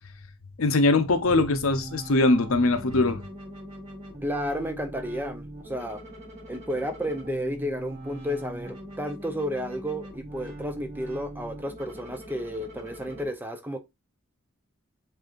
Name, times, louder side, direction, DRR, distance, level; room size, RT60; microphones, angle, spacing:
voice 1, 0.6-3.2, left 2 dB, 75° left, 0.7 m, -22 dB
sound 1, 1.2-13.3, right 1 dB, 30° right, 3.5 m, -41 dB
voice 2, 4.2-6.0 6.5-13.8, equal, 10° right, 0.5 m, -32 dB
7.6 x 2.7 x 2.4 m
head